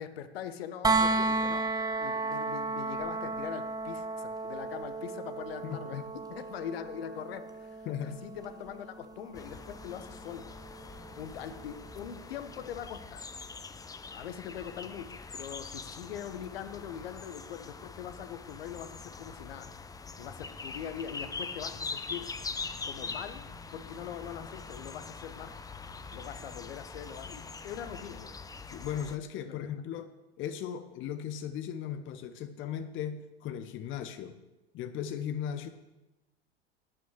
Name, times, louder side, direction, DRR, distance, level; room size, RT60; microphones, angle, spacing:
voice 1, 0.0-1.7 2.0-10.5 11.2-13.3 14.1-19.7 20.2-22.5 22.8-25.5 26.1-28.4 29.4-29.7, left 9 dB, 65° left, 11 dB, 1.2 m, -42 dB
sound 1, 0.8-12.7 14.6-14.7, right 3 dB, 10° right, 1.2 m, -34 dB
voice 2, 5.6-6.0 7.9-8.2 28.7-30.1 30.4-34.4 34.7-35.7, left 9 dB, 35° left, 11 dB, 1.0 m, -37 dB
sound 2, 9.3-29.2, left 4 dB, 10° left, 0.7 m, -43 dB
12.0 x 9.4 x 6.6 m, 1.0 s
figure-of-eight pair, 80°, 33 cm